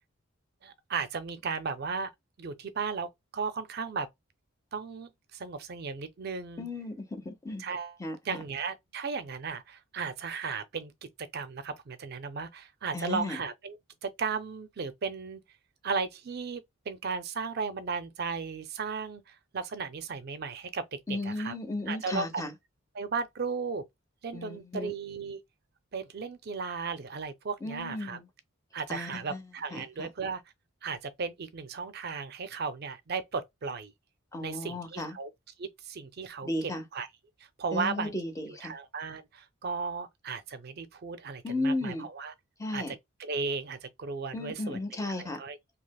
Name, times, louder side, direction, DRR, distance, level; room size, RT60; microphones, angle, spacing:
voice 1, 0.6-2.1 2.4-4.1 4.7-6.7 7.6-8.0 8.2-10.9 11.3-15.4 15.8-21.5 21.9-22.4 22.9-23.8 24.2-25.4 25.9-28.2 28.7-30.4 30.8-33.9 34.4-35.3 35.6-37.1 37.6-38.1 38.6-42.3 42.7-44.8 45.1-45.6, right 5 dB, 50° right, 0.4 m, -35 dB
voice 2, 6.6-7.7 8.0-8.2 12.9-13.4 21.1-22.5 24.3-24.9 27.6-28.3 28.9-29.4 29.7-30.1 34.3-35.1 36.4-36.8 37.7-38.7 41.4-42.1 42.6-42.9 44.3-45.4, left 2 dB, 15° left, 0.7 m, -34 dB
3.2 x 2.8 x 2.2 m
head